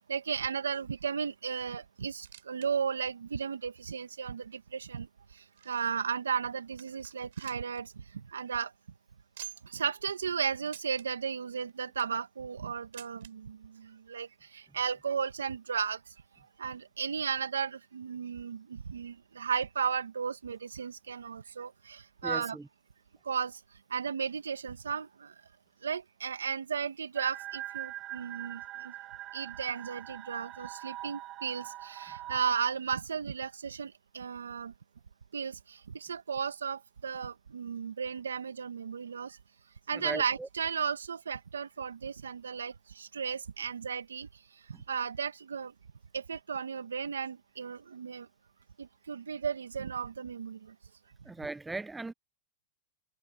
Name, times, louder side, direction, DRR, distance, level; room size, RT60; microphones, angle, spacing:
voice 1, 0.0-8.7 9.6-22.6 23.2-25.3 25.8-28.9 29.3-34.7 35.3-39.4 39.9-45.7 46.1-48.3 48.8-50.8, right 6 dB, 90° right, 2.1 m, -35 dB
sound 1, 2.0-2.7 3.0-3.1 3.7-3.8 4.6-6.0 6.5-6.6 6.8-7.8 8.1-8.2 8.5-8.6 9.3-9.8 10.7-11.1 11.7-12.2 12.9-13.3 14.3-14.4 14.6-14.7 15.5-15.6, right 12 dB, 70° right, 7.7 m, -49 dB
voice 2, 22.2-22.6 39.9-40.5 51.3-52.1, right 3 dB, 10° right, 0.7 m, -38 dB
sound 2, 27.2-32.6, right 15 dB, 35° right, 6.9 m, -43 dB
hypercardioid pair, 110°, 0 cm